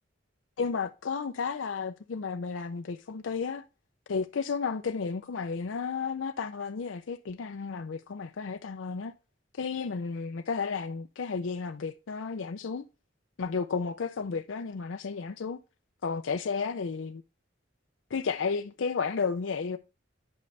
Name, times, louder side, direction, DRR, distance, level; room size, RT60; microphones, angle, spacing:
voice 1, 0.6-3.6 4.1-9.1 9.6-12.8 13.4-15.6 16.0-17.2 18.1-19.8, left 5 dB, 85° left, 0.5 m, -32 dB
11.0 x 5.3 x 3.3 m
head